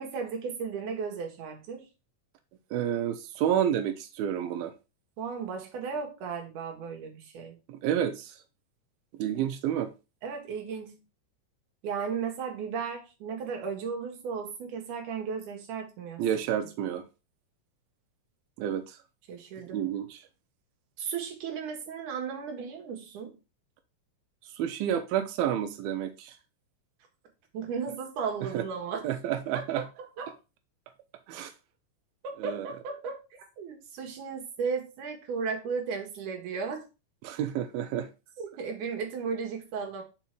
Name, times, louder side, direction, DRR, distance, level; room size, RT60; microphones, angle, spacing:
voice 1, 0.0-1.9 5.2-7.6 10.2-11.0 11.8-16.2 19.3-19.8 21.0-23.3 27.5-29.0 29.8-29.9 30.2-30.3 32.2-33.2 33.6-36.8 38.4-40.0, right 5 dB, 65° right, 2 dB, 2.8 m, -35 dB
voice 2, 2.7-4.7 7.7-8.4 9.1-9.9 16.2-17.0 18.6-19.0 19.7-20.2 24.5-26.4 28.4-28.6 29.0-29.8 31.3-31.5 32.4-32.7 37.2-38.1, right 10 dB, 90° right, 7 dB, 2.6 m, -30 dB
5.5 x 4.6 x 4.4 m, 0.28 s
omnidirectional pair, 4.2 m